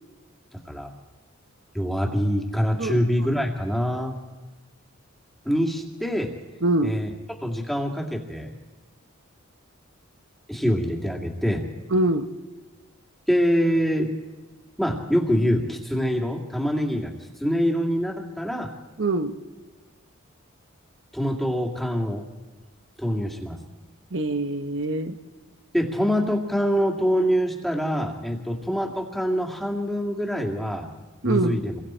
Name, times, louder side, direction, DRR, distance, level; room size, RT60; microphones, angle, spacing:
voice 1, 1.7-4.2 5.5-6.3 6.8-7.1 7.4-8.5 10.5-11.6 13.3-14.1 14.8-17.1 17.4-18.7 21.1-22.2 23.0-23.6 25.7-30.9 31.2-31.8, equal, ahead, 1 dB, 2.4 m, -25 dB
voice 2, 6.6-6.9 11.9-12.3 19.0-19.4 24.1-25.2 31.2-31.6, right 2 dB, 60° right, 7 dB, 1.0 m, -24 dB
29.0 x 23.0 x 4.5 m, 1.2 s
head